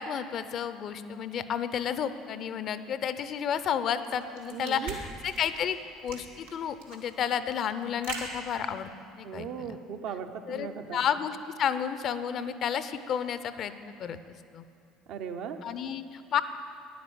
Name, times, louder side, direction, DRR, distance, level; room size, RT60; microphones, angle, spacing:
voice 1, 0.0-5.8 6.0-8.9 9.2-9.8 10.5-14.6 15.6-16.4, left 8 dB, 50° left, 12 dB, 0.6 m, -32 dB
sound 1, 4.0-9.2, right 4 dB, 85° right, 1.9 m, -42 dB
voice 2, 4.5-4.9 9.2-11.0 15.1-15.6, right 7 dB, 60° right, 7 dB, 0.8 m, -37 dB
10.5 x 9.4 x 7.9 m, 2.5 s
hypercardioid pair, 65°, 0 cm